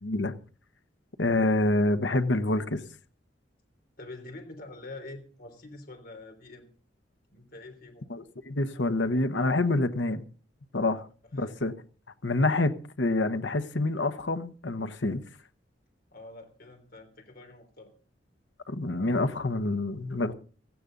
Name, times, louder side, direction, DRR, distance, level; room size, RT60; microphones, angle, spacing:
voice 1, 0.0-0.3 1.2-2.8 8.1-10.2 10.7-11.0 11.3-11.7 12.2-15.2 18.7-20.3, left 2 dB, 70° left, 1.2 m, -27 dB
voice 2, 4.0-6.7 7.3-8.1 11.3-11.5 16.1-17.9, left 2 dB, 55° left, 3.3 m, -46 dB
17.0 x 15.0 x 3.9 m
head